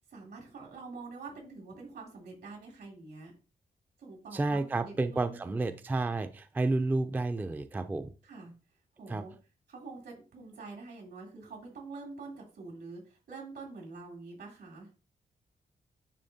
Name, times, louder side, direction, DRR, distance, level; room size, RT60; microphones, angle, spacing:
voice 1, 0.0-3.3 4.0-5.6 8.2-8.5 9.0-9.3 9.7-14.9, right 3 dB, 80° right, -1 dB, 3.1 m, -46 dB
voice 2, 4.3-8.1 9.1-9.2, right 2 dB, 10° right, 9 dB, 0.3 m, -31 dB
9.9 x 3.5 x 2.7 m, 0.33 s
wide cardioid pair, 165°, 17 cm